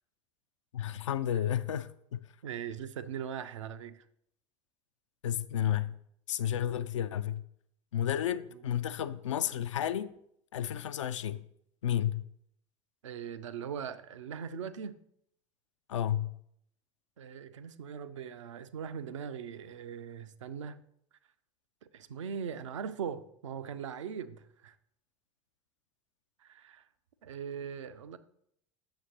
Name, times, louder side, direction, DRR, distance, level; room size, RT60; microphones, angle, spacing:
voice 1, 0.7-2.2 5.2-6.0 6.3-7.4 7.9-10.2 10.5-11.4 11.8-12.2 15.9-16.3, left 10 dB, 75° left, 0.4 m, -32 dB
voice 2, 2.4-4.0 8.5-8.6 13.0-15.0 17.2-20.8 21.9-24.7 26.4-26.8 27.2-28.2, right 7 dB, 75° right, 0.4 m, -40 dB
7.7 x 6.2 x 2.8 m
figure-of-eight pair, 70°, 16 cm